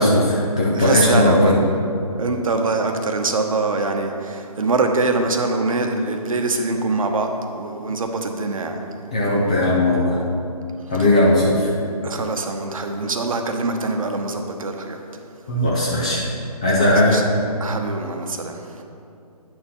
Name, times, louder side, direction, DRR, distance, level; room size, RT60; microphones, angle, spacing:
voice 1, 0.0-1.6 9.1-10.2 10.9-11.7 15.5-16.3 16.6-17.2, left 1 dB, 10° left, -5 dB, 0.3 m, -18 dB
voice 2, 0.8-1.6 2.2-8.8 12.0-15.0 16.8-17.2 17.6-18.8, right 3 dB, 60° right, 4 dB, 1.0 m, -23 dB
9.4 x 4.5 x 5.4 m, 2.6 s
figure-of-eight pair, 150°, 20 cm